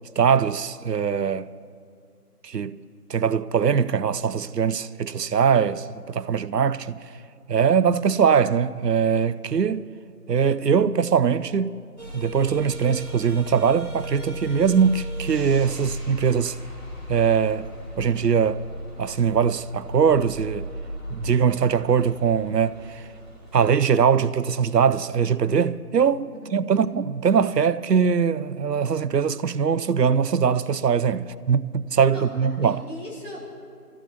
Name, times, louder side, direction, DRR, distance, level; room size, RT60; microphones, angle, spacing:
voice 1, 0.2-1.5 2.4-2.8 3.1-7.0 7.5-9.9 10.3-11.8 12.1-16.6 17.1-17.7 18.0-18.6 19.0-20.7 21.1-23.1 23.5-32.8, right 7 dB, 90° right, 0.6 m, -22 dB
sound 1, 12.0-24.1, equal, 45° right, 2.6 m, -36 dB
voice 2, 26.4-26.9 31.9-33.4, left 1 dB, 50° left, 4.8 m, -39 dB
23.5 x 14.5 x 3.1 m
figure-of-eight pair, 175°, 47 cm